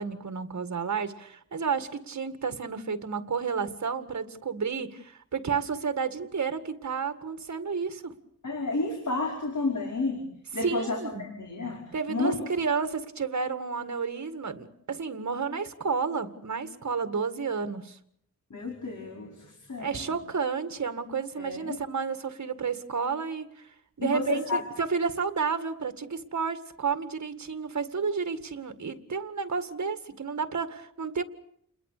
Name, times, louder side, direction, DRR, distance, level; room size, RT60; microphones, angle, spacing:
voice 1, 0.0-8.1 10.6-11.2 11.9-18.0 19.8-31.2, right 5 dB, 60° right, 10 dB, 2.0 m, -31 dB
voice 2, 8.4-10.2 10.5-11.8 12.1-12.4 18.5-20.1 21.4-21.8 24.0-24.6, left 3 dB, 65° left, 1 dB, 5.1 m, -31 dB
29.5 x 21.5 x 6.7 m, 0.68 s
wide cardioid pair, 135°, 32 cm